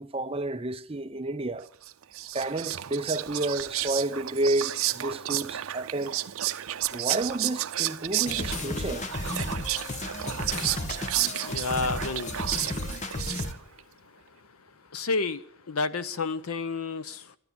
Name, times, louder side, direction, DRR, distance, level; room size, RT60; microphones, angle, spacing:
voice 1, 0.0-1.7 2.3-6.2 6.9-9.1, right 2 dB, 25° right, 0.6 m, -30 dB
Whispering, 1.8-13.8, right 13 dB, 75° right, 0.5 m, -32 dB
sound 1, 8.3-13.5, left 2 dB, 35° left, 1.2 m, -33 dB
voice 2, 11.5-12.4 14.9-17.4, left 3 dB, 85° left, 0.8 m, -30 dB
13.0 x 12.0 x 8.7 m
head